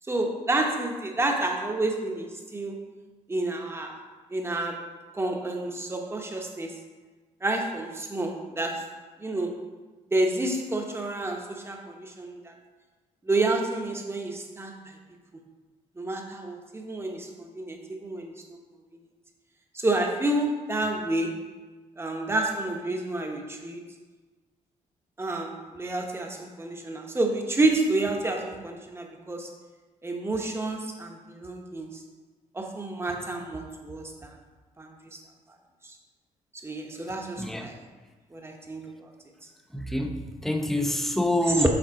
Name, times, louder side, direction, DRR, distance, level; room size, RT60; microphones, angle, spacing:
voice 1, 0.1-2.8 3.3-4.0 4.3-4.8 5.1-6.8 7.4-8.9 9.2-9.6 10.1-12.5 13.2-14.8 16.0-18.3 19.7-21.5 22.0-23.8 25.2-29.5 30.0-32.0 32.5-34.3 34.8-35.2 36.6-37.8 38.3-39.0 41.5-41.7, right 2 dB, 20° right, 2 dB, 1.0 m, -29 dB
voice 2, 39.7-41.7, left 1 dB, ahead, 4 dB, 0.6 m, -26 dB
7.7 x 3.7 x 4.7 m, 1.3 s
cardioid pair, 100°, 14 cm